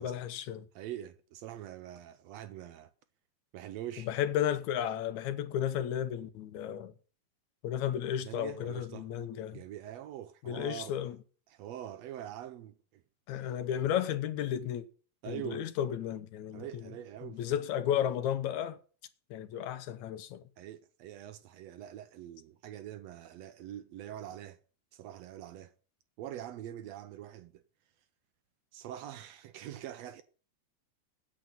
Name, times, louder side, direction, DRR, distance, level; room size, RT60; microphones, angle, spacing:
voice 1, 0.0-0.7 4.1-6.9 7.6-9.6 10.5-11.2 13.3-14.8 15.3-16.8 17.2-18.8 19.3-20.4, left 10 dB, 80° left, 2.2 m, -33 dB
voice 2, 0.7-2.9 3.5-4.1 8.2-9.1 9.5-11.0 11.5-13.0 15.2-15.7 16.5-17.4 20.6-24.6 24.9-25.7 26.2-27.6 28.7-30.2, right 12 dB, 75° right, 1.7 m, -44 dB
8.6 x 7.6 x 9.0 m
omnidirectional pair, 3.3 m